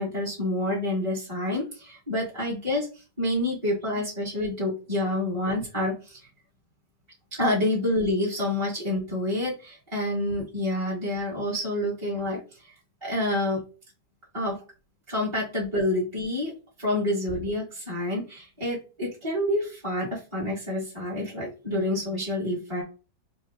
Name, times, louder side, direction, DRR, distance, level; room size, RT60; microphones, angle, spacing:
voice 1, 0.0-6.3 7.3-12.7 13.0-13.6 14.3-14.6 15.1-16.5 16.8-22.8, left 1 dB, 15° right, -8 dB, 1.7 m, -28 dB
4.5 x 3.0 x 3.6 m, 0.33 s
omnidirectional pair, 1.9 m